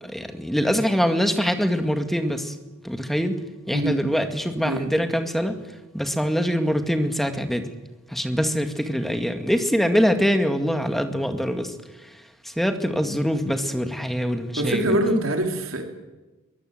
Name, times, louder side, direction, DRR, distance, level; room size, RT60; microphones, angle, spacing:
voice 1, 0.0-2.5 2.8-3.4 3.7-5.5 5.9-7.7 8.1-11.7 12.6-14.9, equal, ahead, 7 dB, 2.1 m, -23 dB
voice 2, 3.7-4.0 4.6-4.9 14.6-15.9, right 1 dB, 80° right, 4 dB, 4.1 m, -24 dB
23.0 x 21.0 x 8.0 m, 1.1 s
head